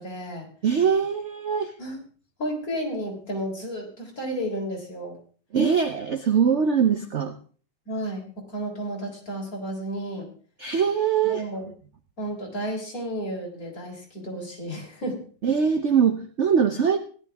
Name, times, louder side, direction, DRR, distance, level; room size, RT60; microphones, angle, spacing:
voice 1, 0.0-0.5 1.8-2.0 2.4-5.2 7.9-10.3 11.2-11.7 12.2-15.2, equal, 40° left, -1 dB, 4.3 m, -32 dB
voice 2, 0.6-1.7 5.5-7.4 10.6-11.5 15.4-17.0, right 7 dB, 60° right, 8 dB, 0.7 m, -22 dB
17.0 x 12.0 x 3.5 m, 0.40 s
omnidirectional pair, 2.2 m